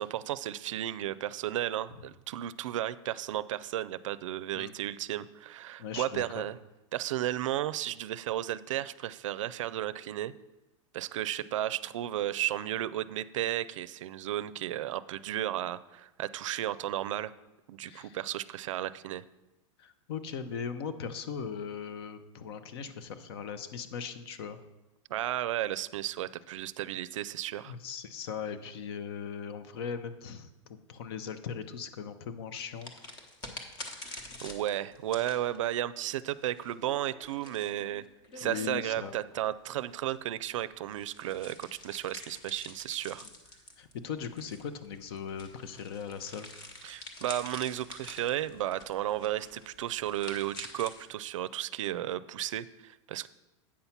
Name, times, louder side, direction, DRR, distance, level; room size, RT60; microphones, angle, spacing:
voice 1, 0.0-6.6 6.9-10.3 10.9-17.3 17.7-19.2 25.1-27.7 33.9-34.1 34.4-38.0 38.4-43.3 46.8-53.3, right 12 dB, 90° right, 17 dB, 0.4 m, -34 dB
voice 2, 5.8-6.4 17.9-18.2 19.8-24.6 27.7-32.9 38.4-39.1 43.8-46.5, left 7 dB, 50° left, 11 dB, 0.7 m, -39 dB
sound 1, 32.8-39.4 40.0-51.1, left 2 dB, 25° left, 0.9 m, -47 dB
8.6 x 5.6 x 5.8 m, 1.0 s
supercardioid pair, 165°, 16 cm